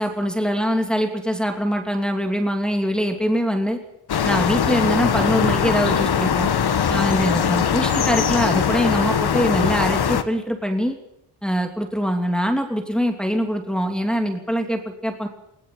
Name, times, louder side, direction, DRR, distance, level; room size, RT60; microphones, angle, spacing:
voice 1, 0.0-3.8 4.2-6.5 6.9-11.0 11.4-15.3, equal, ahead, 3 dB, 2.9 m, -23 dB
sound 1, 4.1-10.2, left 7 dB, 55° left, 1.8 m, -21 dB
20.5 x 19.5 x 9.3 m, 0.78 s
wide cardioid pair, 140°, 45 cm